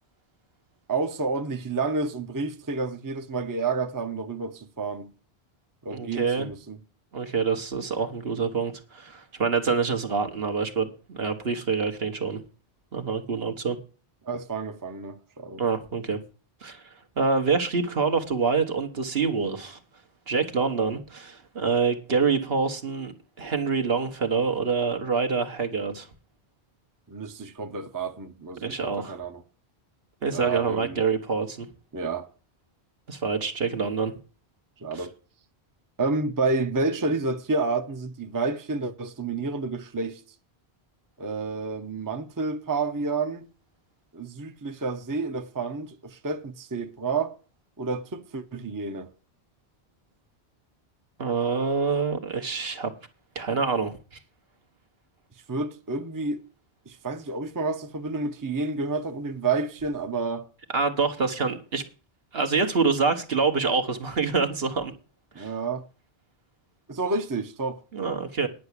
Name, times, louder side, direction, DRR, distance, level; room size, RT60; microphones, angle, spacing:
voice 1, 0.9-5.1 5.8-6.8 14.3-15.6 27.1-29.4 30.3-31.0 31.9-32.3 34.8-35.1 36.0-40.2 41.2-43.5 44.1-47.4 47.8-49.1 55.5-56.4 56.9-60.5 65.3-65.9 66.9-67.8, right 3 dB, 20° right, 0.7 m, -30 dB
voice 2, 5.9-6.5 7.1-12.4 12.9-13.8 15.6-16.2 16.6-19.8 20.3-23.1 23.4-26.1 28.6-29.2 30.2-31.7 33.1-34.1 34.9-35.1 51.2-52.9 53.3-53.9 60.7-61.8 62.3-64.9 65.4-65.5 67.9-68.5, right 5 dB, 65° right, 1.5 m, -26 dB
10.5 x 5.9 x 8.2 m
omnidirectional pair, 1.1 m